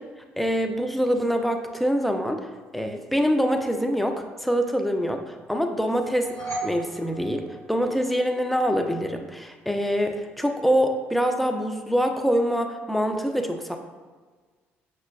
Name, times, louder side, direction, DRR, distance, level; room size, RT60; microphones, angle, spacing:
voice 1, 0.4-2.4 2.7-6.3 6.6-13.8, equal, ahead, 4 dB, 0.4 m, -25 dB
sound 1, 5.9-8.2, right 2 dB, 60° left, 1.1 m, -36 dB
5.5 x 2.2 x 2.3 m, 1.4 s
figure-of-eight pair, 50°, 6 cm